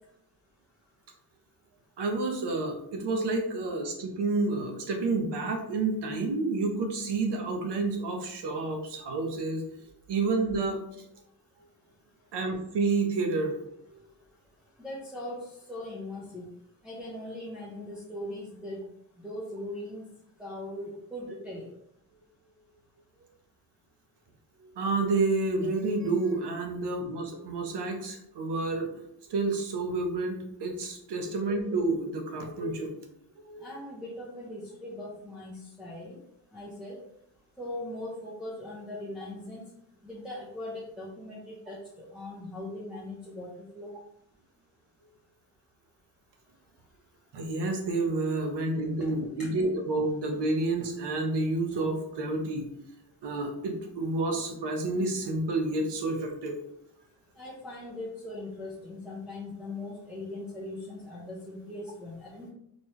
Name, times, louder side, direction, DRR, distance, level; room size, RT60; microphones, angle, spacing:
voice 1, 2.0-9.6 10.1-10.8 12.3-13.5 24.8-28.9 29.3-32.9 33.5-33.7 47.3-52.6 53.2-56.6, right 3 dB, 85° right, 3 dB, 1.0 m, -29 dB
voice 2, 14.8-15.4 15.7-16.4 16.8-18.8 19.2-20.0 20.4-21.6 33.6-36.1 36.5-37.0 37.6-39.6 40.0-41.8 42.1-43.5 43.8-43.9 49.4-49.5 57.4-62.5, left 1 dB, ahead, -7 dB, 0.8 m, -40 dB
4.2 x 3.3 x 3.1 m, 0.75 s
wide cardioid pair, 165°, 40 cm